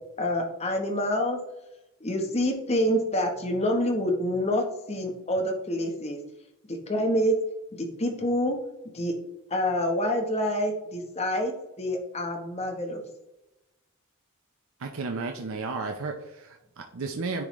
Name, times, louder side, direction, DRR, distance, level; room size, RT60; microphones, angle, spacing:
voice 1, 0.2-1.4 2.0-6.2 6.7-7.4 7.8-8.6 8.9-9.2 9.5-13.0, equal, 30° left, 3 dB, 1.0 m, -27 dB
voice 2, 14.8-17.4, right 3 dB, 70° right, 3 dB, 0.6 m, -33 dB
10.0 x 3.7 x 3.1 m, 0.93 s
head